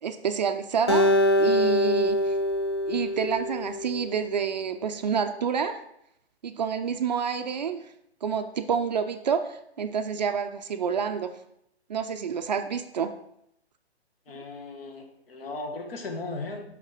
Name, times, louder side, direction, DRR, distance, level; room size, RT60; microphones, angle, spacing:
voice 1, 0.0-2.3 2.9-5.7 6.4-7.9 8.2-11.3 11.9-13.1 14.3-14.4, right 6 dB, 40° right, 8 dB, 0.5 m, -28 dB
Acoustic guitar, 0.9-4.2, left 1 dB, 25° left, 0.3 m, -24 dB
voice 2, 14.3-16.6, left 3 dB, 60° left, 2 dB, 1.6 m, -37 dB
5.8 x 5.4 x 4.9 m, 0.76 s
hypercardioid pair, 150°, 33 cm